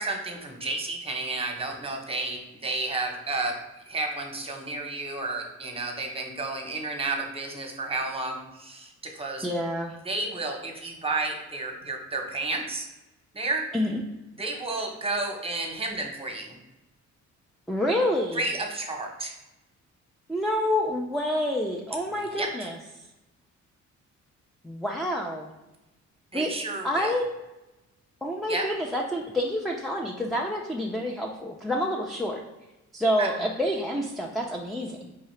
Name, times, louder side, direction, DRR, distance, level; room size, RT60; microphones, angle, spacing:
voice 1, 0.0-9.5 10.0-12.9 13.3-13.6 14.4-16.5 18.4-19.3 22.3-22.5 26.3-27.1 28.5-28.6 33.2-33.3, right 3 dB, 20° right, 2 dB, 0.8 m, -31 dB
voice 2, 9.4-10.0 13.7-14.0 17.7-18.4 20.3-22.8 24.6-25.5 26.3-26.5 26.8-27.3 28.2-32.4 32.9-35.1, equal, ahead, -1 dB, 0.4 m, -28 dB
4.7 x 2.7 x 3.1 m, 1.0 s
cardioid pair, 90°, 30 cm